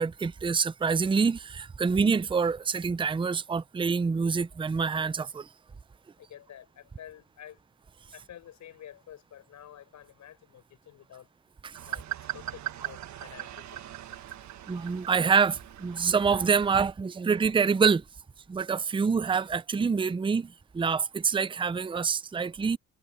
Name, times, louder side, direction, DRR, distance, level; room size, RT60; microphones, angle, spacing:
voice 1, 0.0-5.5 11.6-11.8 14.7-18.0 18.5-22.8, right 5 dB, 15° right, 0.5 m, -26 dB
voice 2, 6.2-7.6 8.1-11.3 11.9-13.8, left 10 dB, 70° left, 7.6 m, -49 dB
sound 1, 11.7-16.7, right 12 dB, 65° right, 1.5 m, -40 dB
cardioid pair, 90°, 30 cm